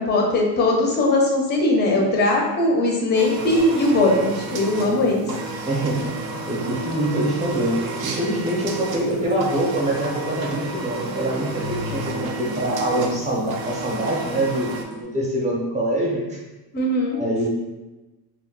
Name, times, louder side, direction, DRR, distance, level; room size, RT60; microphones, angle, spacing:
voice 1, 0.0-5.3 16.7-17.2, left 2 dB, 25° left, 0 dB, 0.5 m, -20 dB
sound 1, 3.1-14.8, right 3 dB, 60° right, 0.5 m, -33 dB
sound 2, 3.3-15.0, right 2 dB, 90° right, 0.7 m, -36 dB
voice 2, 5.7-16.4 17.1-17.5, right 1 dB, 15° right, -4 dB, 0.6 m, -25 dB
2.3 x 2.1 x 3.7 m, 1.1 s
cardioid pair, 155°, 41 cm